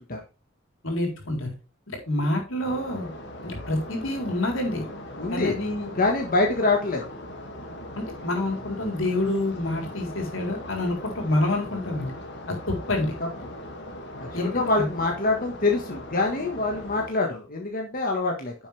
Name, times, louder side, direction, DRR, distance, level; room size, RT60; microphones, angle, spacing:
voice 1, 0.8-1.5 1.9-3.1 3.4-4.8 5.3-5.9 7.9-12.1 12.5-13.1 14.3-14.9, left 1 dB, 80° left, 2 dB, 4.0 m, -27 dB
sound 1, 2.6-17.1, left 1 dB, 60° left, 2.3 m, -40 dB
voice 2, 5.2-5.6 5.9-7.0 14.2-18.5, left 3 dB, 45° left, 1 dB, 1.6 m, -25 dB
10.5 x 7.2 x 3.4 m, 0.32 s
head